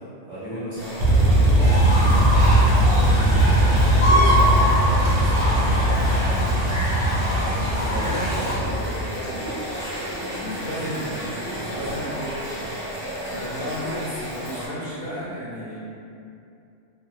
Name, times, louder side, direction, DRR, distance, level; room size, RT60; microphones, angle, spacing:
voice 1, 0.3-3.8 4.2-6.2 7.1-9.5 11.7-12.0 13.3-13.4, equal, 50° right, -11 dB, 0.5 m, -35 dB
sound 1, 0.7-14.7, equal, 35° right, 1.1 m, -33 dB
sound 2, 1.0-9.1, right 1 dB, 70° right, 0.9 m, -19 dB
sound 3, 1.6-8.5, equal, 20° left, 1.3 m, -25 dB
voice 2, 8.0-9.7 10.5-11.3 11.6-12.7 13.2-15.8, equal, 55° left, -10 dB, 0.8 m, -34 dB
2.4 x 2.1 x 2.8 m, 2.6 s
omnidirectional pair, 1.3 m